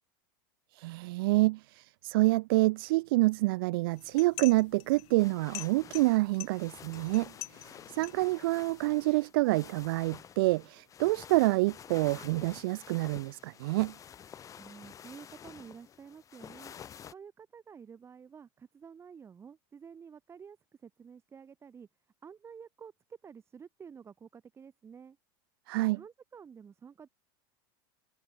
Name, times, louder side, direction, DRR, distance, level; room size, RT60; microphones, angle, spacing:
voice 1, 0.7-13.9 25.7-26.0, right 21 dB, 75° right, 0.6 m, -27 dB
sound 1, 3.9-9.1, left 31 dB, 60° left, 7.8 m, -47 dB
sound 2, 5.2-17.1, left 8 dB, 25° left, 4.7 m, -50 dB
voice 2, 14.6-16.7 17.1-21.9 22.2-25.2 25.7-27.1, right 6 dB, 20° right, 4.3 m, -50 dB
supercardioid pair, 135°, 12 cm